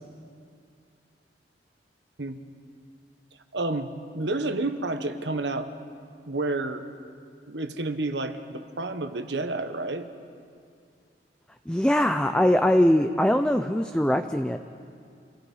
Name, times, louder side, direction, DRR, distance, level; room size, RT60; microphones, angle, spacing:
voice 1, 3.5-5.7 6.3-6.9 7.5-10.1, right 2 dB, 80° right, 8 dB, 1.4 m, -30 dB
voice 2, 11.7-14.6, left 1 dB, 5° left, 7 dB, 0.5 m, -22 dB
27.5 x 17.0 x 5.6 m, 2.3 s
head